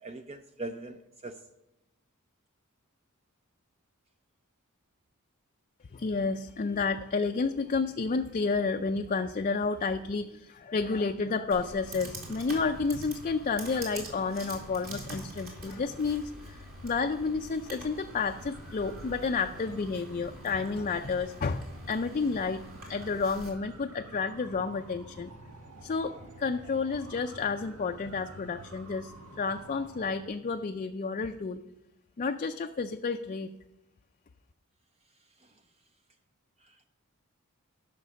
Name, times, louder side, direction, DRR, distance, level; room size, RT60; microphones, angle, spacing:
voice 1, 0.0-1.4 36.6-36.9, right 2 dB, 30° right, 7 dB, 0.5 m, -41 dB
voice 2, 5.9-16.6 16.8-22.6 22.9-25.3 25.8-29.1 29.4-31.6 32.2-33.5, left 4 dB, 35° left, 5 dB, 0.4 m, -31 dB
Computer keyboard, 11.5-23.5, right 1 dB, 45° right, 3.0 m, -45 dB
sound 1, 18.1-30.2, right 1 dB, 90° right, 1.4 m, -50 dB
12.5 x 5.9 x 6.3 m, 0.90 s
head